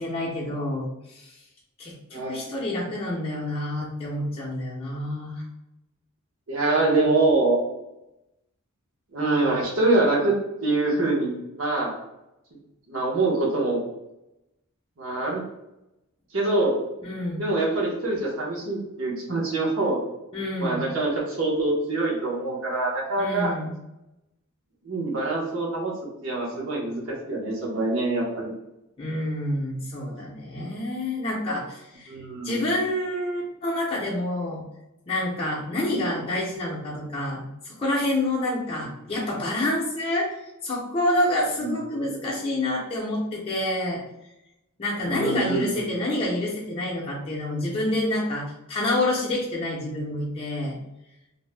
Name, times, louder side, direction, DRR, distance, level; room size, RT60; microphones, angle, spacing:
voice 1, 0.0-1.4 1.8-5.4 17.0-17.5 20.3-20.9 23.2-23.8 29.0-32.1 32.4-34.6 35.1-40.4 40.6-44.0 44.8-50.7, left 1 dB, 25° left, -5 dB, 0.5 m, -28 dB
voice 2, 2.1-2.4 6.5-7.6 9.1-10.3 10.6-11.9 12.9-13.8 15.0-15.4 16.3-16.8 17.4-20.0 20.6-23.5 24.8-25.9 26.2-28.5 32.1-32.7 35.8-36.1 41.6-41.7 45.0-45.7, right 2 dB, 70° right, -3 dB, 0.9 m, -25 dB
2.6 x 2.0 x 3.2 m, 0.90 s
head